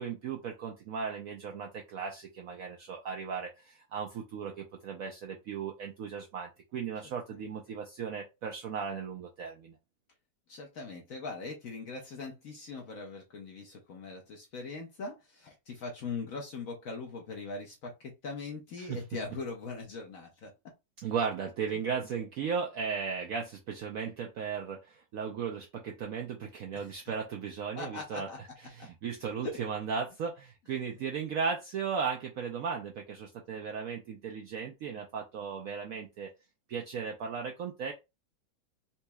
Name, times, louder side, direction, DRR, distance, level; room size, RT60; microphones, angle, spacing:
voice 1, 0.0-9.8 18.8-19.0 21.0-28.3 28.8-36.3 36.7-37.9, right 6 dB, 75° right, 1 dB, 0.7 m, -36 dB
voice 2, 10.5-20.5 26.7-26.9 27.7-28.4 29.4-29.6, left 4 dB, 60° left, 1 dB, 0.9 m, -41 dB
4.1 x 2.7 x 2.2 m, 0.24 s
omnidirectional pair, 2.0 m